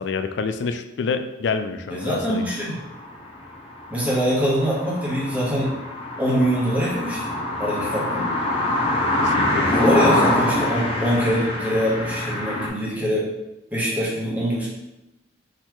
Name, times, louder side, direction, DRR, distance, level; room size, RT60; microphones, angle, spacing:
voice 1, 0.0-2.4 9.2-9.7, left 5 dB, 65° left, 9 dB, 0.4 m, -27 dB
voice 2, 1.9-2.8 3.9-5.8 6.2-7.3 7.6-8.3 9.7-13.3 13.7-14.7, equal, 10° right, -6 dB, 1.2 m, -23 dB
sound 1, 2.0-12.7, left 1 dB, 30° left, 0.8 m, -25 dB
4.1 x 4.0 x 3.1 m, 0.91 s
head